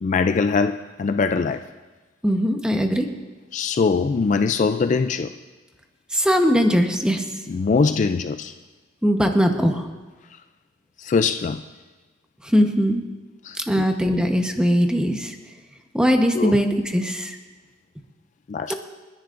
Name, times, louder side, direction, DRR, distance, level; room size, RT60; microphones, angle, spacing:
voice 1, 0.0-1.6 3.5-5.3 7.5-8.5 11.0-11.6 13.4-13.8 16.3-16.6 18.5-18.7, left 4 dB, 40° left, 9 dB, 0.3 m, -22 dB
voice 2, 2.2-3.1 6.1-7.3 9.0-9.9 12.4-13.0 13.6-15.3 15.9-17.4 18.7-18.8, equal, 5° right, 4 dB, 0.9 m, -20 dB
30.0 x 10.5 x 2.5 m, 1.3 s
head